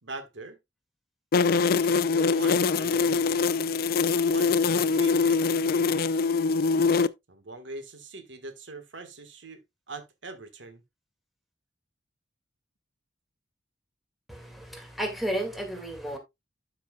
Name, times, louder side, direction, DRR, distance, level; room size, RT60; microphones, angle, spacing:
voice 1, 0.0-0.6 1.4-3.3 4.3-6.3 7.3-9.6 9.9-10.8, right 3 dB, 75° right, 1.4 m, -43 dB
sound 1, 1.3-7.1, left 4 dB, 50° left, 0.4 m, -23 dB
voice 2, 14.3-16.2, right 1 dB, ahead, 2.0 m, -33 dB
12.0 x 5.9 x 2.3 m
head